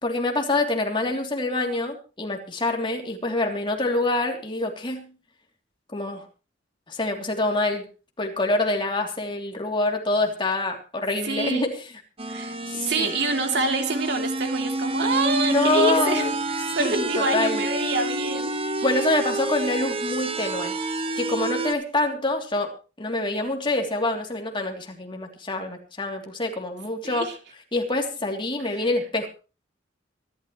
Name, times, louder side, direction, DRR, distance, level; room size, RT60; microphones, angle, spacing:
voice 1, 0.0-5.1 5.9-6.2 6.9-7.8 8.2-11.8 12.7-13.1 15.5-16.3 16.8-17.6 18.8-20.7 21.2-22.7 23.0-27.3 27.7-29.3, left 2 dB, 25° left, 2 dB, 3.0 m, -26 dB
voice 2, 11.2-11.7 12.3-12.5 12.8-18.5 27.0-27.3, right 3 dB, 65° right, 5 dB, 3.0 m, -26 dB
sound 1, 12.2-21.7, right 2 dB, 30° right, 1.2 m, -28 dB
24.5 x 12.5 x 3.2 m, 0.33 s
head